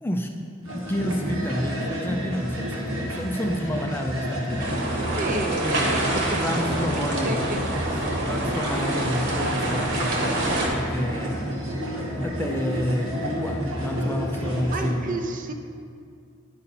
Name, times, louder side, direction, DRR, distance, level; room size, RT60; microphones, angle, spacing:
voice 1, 0.0-0.4 0.7-5.1 5.6-7.4 8.2-11.7 12.2-15.2, equal, 10° left, 3 dB, 0.3 m, -30 dB
sound 1, 0.6-14.9, equal, 90° right, 1.7 m, -30 dB
sound 2, 4.6-10.7, right 1 dB, 60° right, 1.3 m, -27 dB
voice 2, 5.2-6.4 7.2-7.6 14.7-15.5, right 2 dB, 40° right, 5 dB, 0.5 m, -31 dB
10.5 x 5.4 x 4.1 m, 2.4 s
head